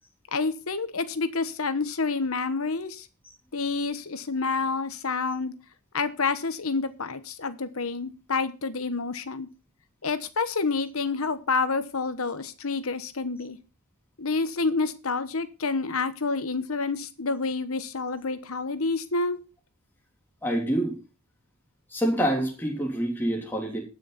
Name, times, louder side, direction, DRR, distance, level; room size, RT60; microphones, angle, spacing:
voice 1, 0.3-3.1 3.5-5.5 5.9-9.5 10.0-13.6 14.2-19.4, left 4 dB, 70° left, 12 dB, 1.1 m, -28 dB
voice 2, 20.4-21.0 21.9-23.8, equal, 10° left, -2 dB, 3.3 m, -26 dB
19.0 x 6.4 x 4.2 m, 0.31 s
head